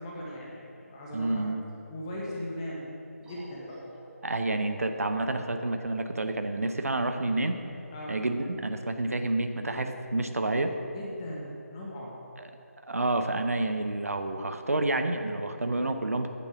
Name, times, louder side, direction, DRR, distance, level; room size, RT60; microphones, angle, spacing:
voice 1, 0.0-1.5 1.9-2.9 3.2-3.8 7.9-8.2 10.9-12.2, left 1 dB, 20° left, -4 dB, 1.5 m, -38 dB
voice 2, 1.1-1.6 4.2-7.6 8.1-10.7 12.9-16.3, right 2 dB, 65° right, 7 dB, 0.9 m, -29 dB
sound 1, 3.2-8.5, equal, 5° right, 1.8 m, -52 dB
9.6 x 9.2 x 6.1 m, 2.7 s
figure-of-eight pair, 155°, 8 cm